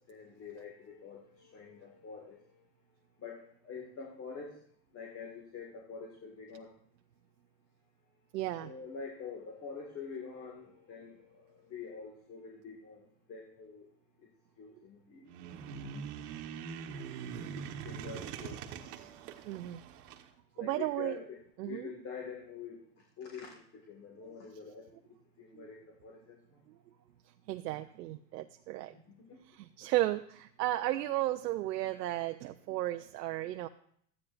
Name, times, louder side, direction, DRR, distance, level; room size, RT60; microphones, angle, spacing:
voice 1, 0.0-2.6 3.2-4.6 4.9-6.7 8.6-13.9 14.2-14.3 14.6-15.3 16.6-18.7 20.6-22.8 23.2-24.9 25.4-26.4 29.1-29.4, left 5 dB, 30° left, 0 dB, 1.8 m, -46 dB
voice 2, 8.3-8.7 19.4-19.8 20.6-21.2 21.6-21.9 25.5-25.7 26.7-26.8 27.5-28.9 29.5-33.7, right 15 dB, 90° right, 6 dB, 0.7 m, -34 dB
sound 1, 15.3-20.3, right 7 dB, 70° right, 1.3 m, -43 dB
14.0 x 9.7 x 2.5 m, 0.64 s
supercardioid pair, 125°, 47 cm